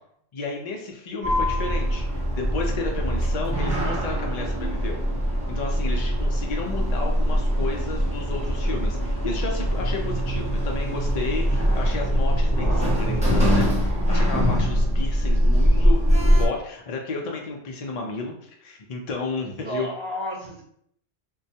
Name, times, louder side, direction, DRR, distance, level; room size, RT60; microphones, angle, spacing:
voice 1, 0.3-5.0 5.5-16.0 16.3-19.9, left 3 dB, 60° left, 0 dB, 0.4 m, -32 dB
Sliding door, 1.2-16.5, equal, 5° right, 1.0 m, -22 dB
voice 2, 15.2-15.9 19.6-20.6, equal, 30° right, -6 dB, 0.7 m, -34 dB
4.1 x 2.3 x 2.7 m, 0.69 s
omnidirectional pair, 1.1 m